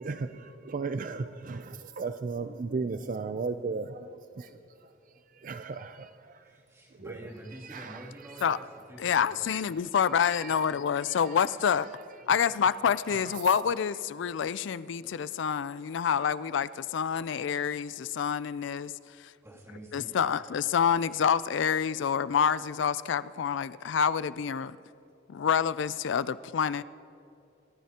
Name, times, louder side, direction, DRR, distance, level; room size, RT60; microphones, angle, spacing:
voice 1, 0.0-4.9 5.3-6.5 7.0-7.2 7.6-8.1 8.4-8.5 10.2-10.6 11.3-11.4 11.9-12.0 13.1-13.4, right 4 dB, 45° right, 0.4 m, -36 dB
voice 2, 6.4-9.7 19.4-20.4, right 1 dB, 15° right, 2.7 m, -47 dB
voice 3, 9.0-11.9 12.3-18.9 19.2-19.3 19.9-24.8 25.3-26.8, left 7 dB, 70° left, 0.4 m, -27 dB
26.5 x 14.0 x 2.9 m
head